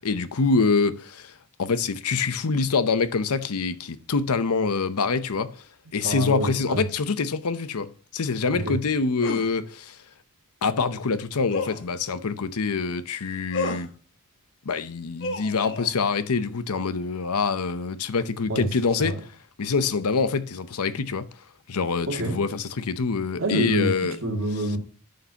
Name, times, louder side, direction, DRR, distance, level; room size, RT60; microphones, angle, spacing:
voice 1, 0.0-1.3 1.6-5.6 5.9-7.9 8.1-10.0 10.6-13.9 14.7-19.2 19.6-21.3 21.7-24.2, left 4 dB, 90° left, 0.7 m, -25 dB
voice 2, 6.0-6.9 8.5-8.8 18.5-19.2 22.1-22.4 23.4-24.8, right 1 dB, 60° right, 2.4 m, -28 dB
sound 1, 9.2-9.5 11.5-11.9 13.5-13.9 15.2-15.9, left 3 dB, 55° left, 1.1 m, -31 dB
11.5 x 6.6 x 2.8 m
head